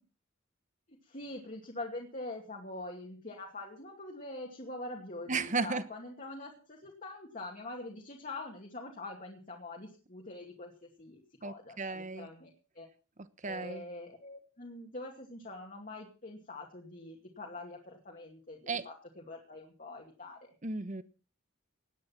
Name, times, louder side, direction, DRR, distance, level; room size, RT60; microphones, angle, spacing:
voice 1, 0.9-12.9 13.4-20.5, left 2 dB, 40° left, -1 dB, 2.5 m, -44 dB
voice 2, 5.3-5.8 11.4-12.3 13.4-13.8 18.7-18.8 20.6-21.0, right 4 dB, 35° right, 14 dB, 1.1 m, -34 dB
18.0 x 9.7 x 5.9 m, 0.38 s
head